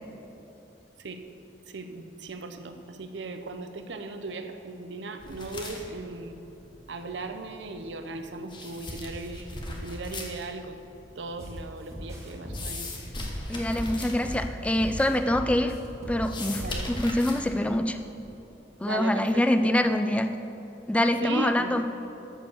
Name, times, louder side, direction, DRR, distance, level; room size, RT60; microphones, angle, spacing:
voice 1, 1.7-6.4 6.9-10.9 11.1-12.9 16.5-16.9 18.8-19.7 21.2-21.8, right 3 dB, 75° right, 7 dB, 0.7 m, -37 dB
sound 1, 5.2-18.3, left 2 dB, 25° left, 1.1 m, -41 dB
sound 2, 11.4-11.6 11.9-14.4 14.8-16.9, equal, 15° right, 1.9 m, -38 dB
voice 2, 13.5-15.8 16.1-18.0 18.8-20.3 20.9-21.8, left 1 dB, 5° left, 7 dB, 0.3 m, -25 dB
13.0 x 4.6 x 6.9 m, 2.9 s
head